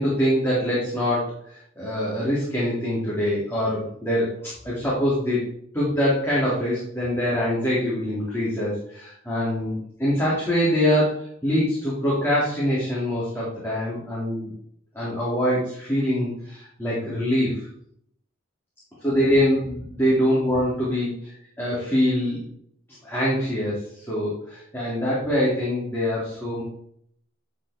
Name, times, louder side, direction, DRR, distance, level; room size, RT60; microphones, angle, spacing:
voice 1, 0.0-5.4 5.7-14.5 14.9-17.7 19.0-22.4 23.0-26.6, equal, 10° left, -8 dB, 2.9 m, -24 dB
11.5 x 5.4 x 3.7 m, 0.67 s
head